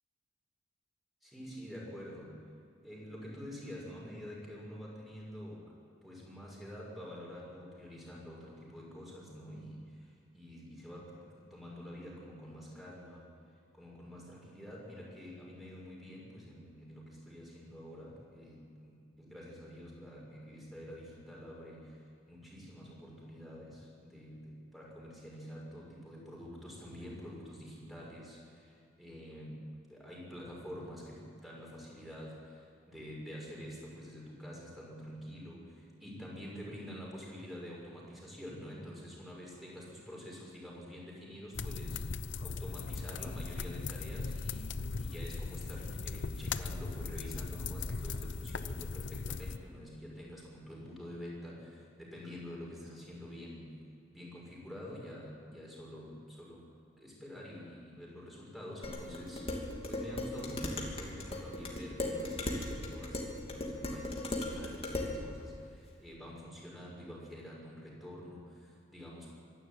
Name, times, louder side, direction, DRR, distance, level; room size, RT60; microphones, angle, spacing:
voice 1, 1.2-2.4 2.8-5.8 6.0-13.3 13.7-29.6 29.9-53.7 54.1-56.7 57.0-69.3, equal, ahead, -4 dB, 6.5 m, -47 dB
sound 1, 41.5-49.6, left 4 dB, 80° left, 0.7 m, -38 dB
Dishes pots and pans, 58.8-65.2, left 1 dB, 30° left, 2.9 m, -37 dB
25.0 x 12.0 x 9.2 m, 2.5 s
head